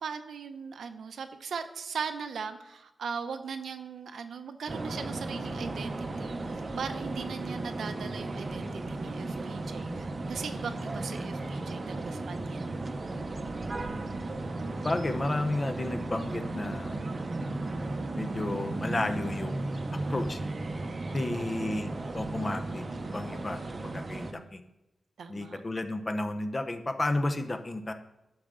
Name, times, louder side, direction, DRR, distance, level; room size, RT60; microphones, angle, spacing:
voice 1, 0.0-12.7 21.3-21.8 24.0-24.5 25.2-25.6, right 6 dB, 80° right, 9 dB, 0.7 m, -39 dB
sound 1, 4.7-24.3, right 2 dB, 35° right, 0.7 m, -35 dB
voice 2, 14.8-17.0 18.1-19.6 20.1-20.4 21.1-21.9 22.1-24.2 24.5-24.6 25.3-27.9, left 2 dB, 25° left, 7 dB, 0.8 m, -32 dB
11.5 x 6.5 x 3.8 m, 0.94 s
wide cardioid pair, 130°, 0 cm